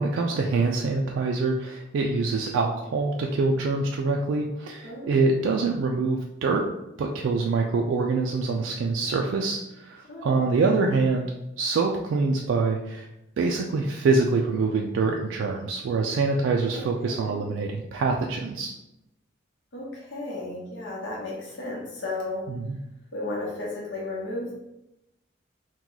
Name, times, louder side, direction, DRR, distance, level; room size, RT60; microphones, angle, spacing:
voice 1, 0.0-6.6 7.0-11.2 11.6-13.1 13.4-18.7 22.5-22.8, right 3 dB, 75° right, 1 dB, 0.3 m, -25 dB
voice 2, 4.8-5.2 10.1-10.3 16.7-17.3 19.7-22.5 23.1-24.5, left 2 dB, 70° left, -5 dB, 0.9 m, -34 dB
2.9 x 2.2 x 3.8 m, 0.89 s
head